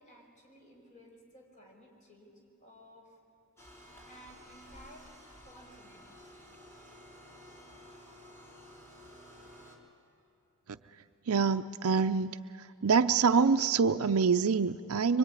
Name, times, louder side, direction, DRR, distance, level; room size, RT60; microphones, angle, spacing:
voice 1, 0.0-2.3 2.6-3.1 4.1-5.1 5.4-6.3, equal, 35° left, 1 dB, 5.3 m, -56 dB
sound 1, 3.6-9.8, equal, 10° left, 3.9 m, -53 dB
voice 2, 11.3-12.4 12.8-15.2, right 5 dB, 70° right, 9 dB, 0.6 m, -25 dB
25.0 x 24.5 x 9.8 m, 2.6 s
head